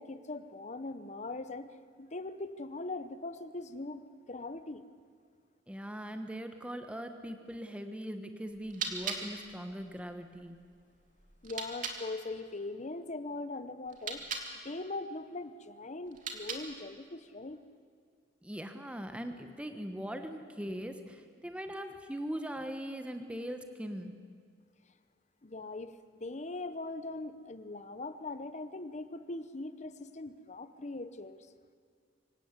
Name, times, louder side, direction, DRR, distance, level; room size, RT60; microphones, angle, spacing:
voice 1, 0.0-1.7 2.0-4.8 11.4-14.2 14.6-17.6 25.4-31.4, left 2 dB, 40° left, 12 dB, 0.9 m, -41 dB
voice 2, 5.7-10.6 18.4-24.1, equal, 5° right, 7 dB, 1.1 m, -40 dB
sound 1, 8.5-12.0 13.8-14.5 16.1-16.9, right 5 dB, 45° right, 2.6 m, -41 dB
25.0 x 17.5 x 8.2 m, 2.1 s
head